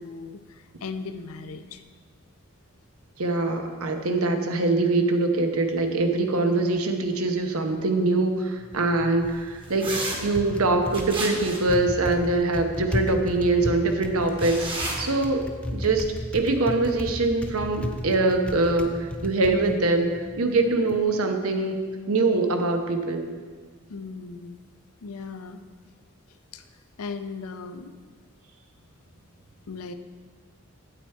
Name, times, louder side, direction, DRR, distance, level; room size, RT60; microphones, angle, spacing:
voice 1, 0.0-1.8 23.9-24.6 25.0-25.6 26.5-26.6 27.0-27.9 29.7-29.9, left 4 dB, 90° left, 9 dB, 0.6 m, -37 dB
voice 2, 3.2-9.9 10.2-14.7 15.0-16.1 16.3-21.8 22.1-23.3, right 2 dB, 85° right, 5 dB, 0.9 m, -23 dB
Typing, 8.6-21.0, left 1 dB, 5° left, 0.4 m, -35 dB
sound 1, 9.8-10.2 10.9-11.7 14.3-15.0, right 2 dB, 25° right, 1.2 m, -31 dB
8.8 x 8.0 x 4.6 m, 1.5 s
head